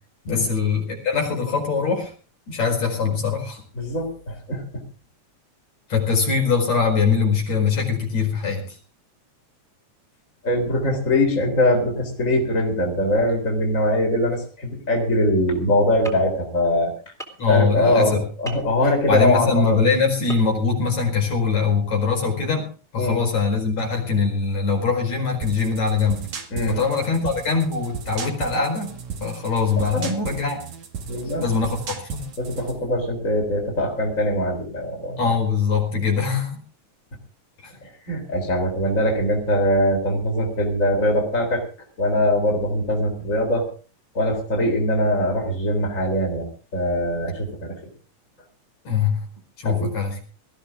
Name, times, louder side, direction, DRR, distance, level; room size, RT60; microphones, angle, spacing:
voice 1, 0.2-2.1 2.5-3.6 5.9-8.8 17.4-18.2 19.1-26.3 26.7-28.9 29.2-30.6 31.4-31.8 32.0-32.3 35.2-36.6 37.6-37.7 48.9-49.2 49.6-50.2, left 5 dB, 65° left, 1 dB, 5.9 m, -22 dB
voice 2, 3.8-4.8 10.4-16.9 17.5-19.8 23.0-23.2 26.5-26.8 29.8-30.1 31.1-31.4 32.4-35.3 37.8-41.6 42.0-43.7 44.1-47.7 49.6-49.9, left 1 dB, 25° left, 2 dB, 4.0 m, -22 dB
sound 1, 16.0-16.2 17.2-17.5 18.5-18.7 20.3-20.4 20.8-20.9, right 1 dB, ahead, 3.3 m, -35 dB
sound 2, 25.4-32.8, right 6 dB, 75° right, 3.6 m, -35 dB
19.5 x 14.5 x 3.7 m, 0.38 s
omnidirectional pair, 3.3 m